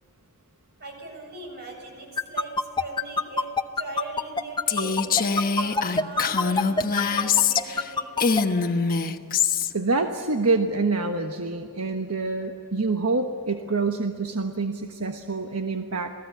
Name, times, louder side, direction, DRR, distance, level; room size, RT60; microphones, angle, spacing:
voice 1, 0.8-3.5 3.8-8.6, right 2 dB, 45° right, 2 dB, 7.5 m, -39 dB
sound 1, 2.2-8.4, left 3 dB, 20° left, 0.8 m, -24 dB
Female speech woman speaking, 4.7-7.9 8.2-9.7, left 6 dB, 40° left, 1.2 m, -24 dB
voice 2, 9.7-16.1, right 3 dB, 75° right, 4 dB, 1.3 m, -26 dB
28.5 x 19.0 x 8.3 m, 2.4 s
head